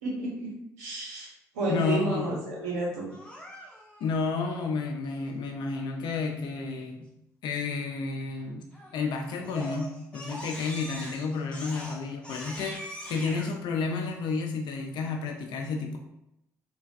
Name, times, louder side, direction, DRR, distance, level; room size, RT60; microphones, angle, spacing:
voice 1, 0.0-0.5 0.8-1.3 1.5-3.1, right 2 dB, 85° right, -4 dB, 0.7 m, -31 dB
voice 2, 1.7-2.4 4.0-7.1 7.4-8.7 8.9-16.0, left 4 dB, 65° left, 2 dB, 0.5 m, -31 dB
Crying sobbing, 3.1-4.0 8.7-9.0 9.4-13.5, equal, 10° left, 0.9 m, -41 dB
3.2 x 2.3 x 2.4 m, 0.82 s
hypercardioid pair, 50°, 8 cm